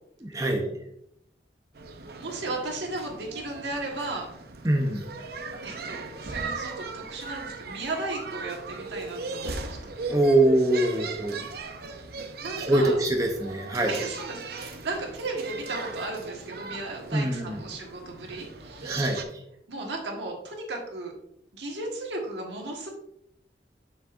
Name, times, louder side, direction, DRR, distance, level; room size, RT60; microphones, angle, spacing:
voice 1, 0.2-0.8 4.6-5.3 10.1-11.5 12.6-14.0 17.1-17.6 18.8-19.4, right 1 dB, 20° right, 1 dB, 0.6 m, -24 dB
sound 1, 1.7-19.2, right 3 dB, 60° right, 0.7 m, -38 dB
voice 2, 2.0-4.3 5.6-9.8 12.4-13.0 13.9-19.0 19.7-21.1 21.5-22.9, right 2 dB, 80° right, 1 dB, 1.5 m, -35 dB
7.2 x 6.0 x 2.5 m, 0.76 s
head